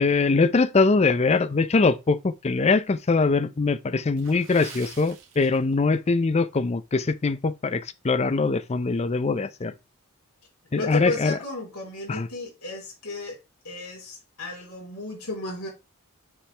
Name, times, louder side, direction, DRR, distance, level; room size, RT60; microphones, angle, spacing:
voice 1, 0.0-9.7 10.7-11.4 12.1-12.3, left 4 dB, 30° left, 0.4 m, -22 dB
Water / Splash splatter, 4.2-6.0 6.3-6.6 7.1-7.3 7.8-7.9, right 6 dB, 60° right, 1.7 m, -46 dB
voice 2, 10.7-13.4 13.6-15.7, left 2 dB, 75° left, 3.7 m, -33 dB
7.2 x 5.1 x 3.3 m
head